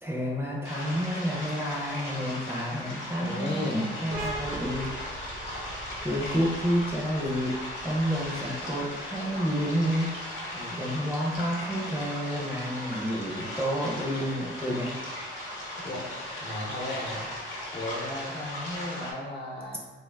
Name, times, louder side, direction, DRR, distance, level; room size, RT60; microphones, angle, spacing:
voice 1, 0.0-4.9 6.0-7.5 7.8-10.1 10.8-14.9, equal, 10° right, -3 dB, 0.4 m, -29 dB
sound 1, 0.6-19.1, left 1 dB, 85° left, 0.9 m, -37 dB
voice 2, 3.2-3.9 10.5-10.8 15.8-16.0 16.4-17.2 17.7-19.8, left 1 dB, 60° left, -3 dB, 0.8 m, -35 dB
sound 2, 4.1-11.4, right 2 dB, 75° right, 0.5 m, -42 dB
3.3 x 2.4 x 2.2 m, 1.3 s
cardioid pair, 105°, 20 cm